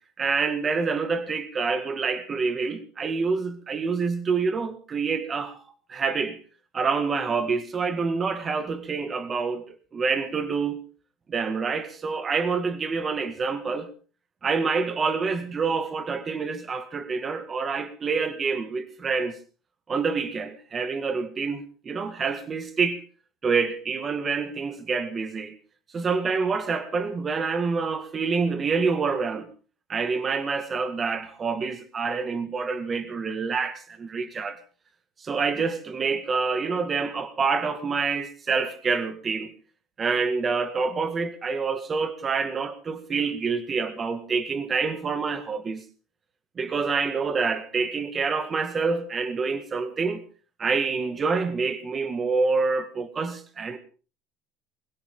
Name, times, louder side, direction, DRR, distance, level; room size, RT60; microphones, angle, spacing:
voice 1, 0.2-5.6 5.9-6.4 6.7-10.8 11.3-13.9 14.4-19.4 19.9-23.0 23.4-25.5 25.9-29.5 29.9-34.6 35.2-39.5 40.0-45.8 46.6-50.2 50.6-53.8, right 4 dB, 25° right, 2.0 m, -27 dB
21.5 x 17.0 x 3.8 m
cardioid pair, 140°, 0 cm